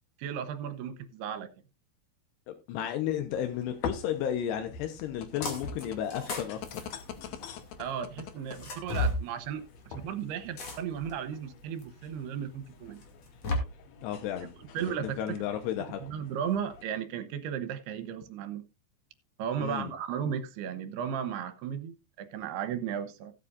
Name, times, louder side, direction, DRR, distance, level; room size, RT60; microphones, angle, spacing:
voice 1, 0.2-1.5 7.8-13.0 14.7-15.4 16.0-18.6 19.4-23.3, right 8 dB, 80° right, 3.1 m, -35 dB
voice 2, 2.5-6.6 14.0-14.5 15.0-16.0 19.6-19.9, left 10 dB, 90° left, 3.2 m, -33 dB
sound 1, 3.3-16.9, left 6 dB, 75° left, 1.6 m, -45 dB
sound 2, 5.4-5.8 6.1-7.7 8.5-9.2 10.6-11.1 11.8-11.9 13.0-13.6, left 2 dB, 45° left, 3.3 m, -33 dB
17.0 x 8.4 x 2.5 m
omnidirectional pair, 4.7 m